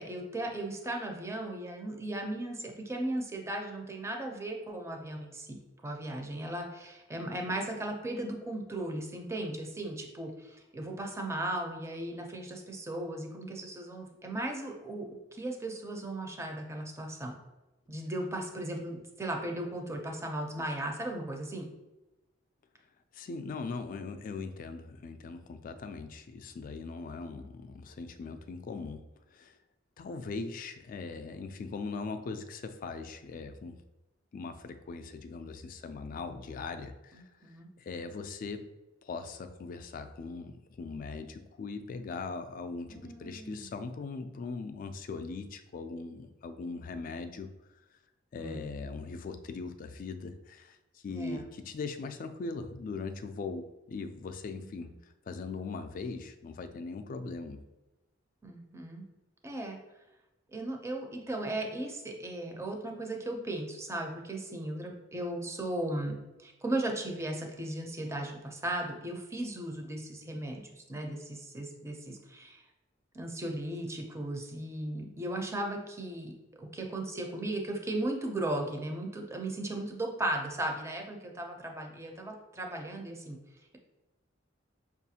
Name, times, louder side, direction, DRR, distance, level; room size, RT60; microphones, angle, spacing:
voice 1, 0.0-17.4 17.9-21.7 37.1-37.7 42.9-43.7 48.3-48.7 51.1-51.4 54.6-54.7 58.4-59.0 59.4-59.8 60.5-72.6 73.1-83.4, right 1 dB, 15° right, 2 dB, 0.5 m, -36 dB
voice 2, 23.1-29.0 29.3-29.6 30.0-33.8 34.3-38.6 39.0-47.5 48.3-54.9 55.3-57.6, left 4 dB, 45° left, 8 dB, 0.3 m, -40 dB
5.3 x 2.4 x 2.7 m, 1.0 s
head